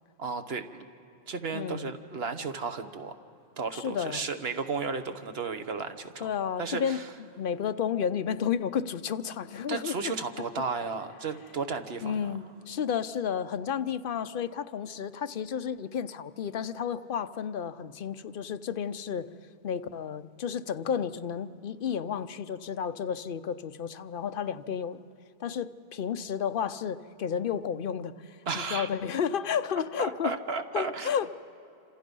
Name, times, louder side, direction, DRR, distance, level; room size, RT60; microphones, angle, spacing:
voice 1, 0.2-0.8 1.3-3.1 3.6-6.3 6.6-7.0 9.7-12.1 28.5-28.9 30.0-31.1, right 4 dB, 75° right, 8 dB, 1.3 m, -33 dB
voice 2, 1.5-1.9 3.7-4.3 6.2-7.0 7.4-10.1 12.0-19.3 19.6-25.0 25.4-30.4 30.7-31.4, left 7 dB, 60° left, 11 dB, 0.8 m, -32 dB
27.0 x 26.5 x 5.4 m, 2.7 s
omnidirectional pair, 1.0 m